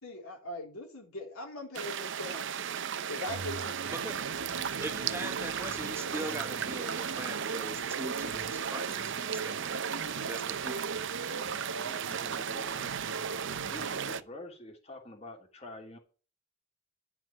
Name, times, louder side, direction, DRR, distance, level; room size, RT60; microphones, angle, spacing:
voice 1, 0.0-2.5 3.1-4.7, left 2 dB, 85° left, 3.9 m, -41 dB
sound 1, 1.7-14.2, right 8 dB, 60° right, 0.7 m, -36 dB
sound 2, 3.3-14.2, right 3 dB, 80° right, 1.2 m, -40 dB
voice 2, 4.8-10.0 10.2-10.9, right 1 dB, 10° right, 1.1 m, -41 dB
voice 3, 11.4-12.9 13.7-16.0, left 2 dB, 30° left, 2.9 m, -48 dB
11.5 x 6.2 x 7.4 m
head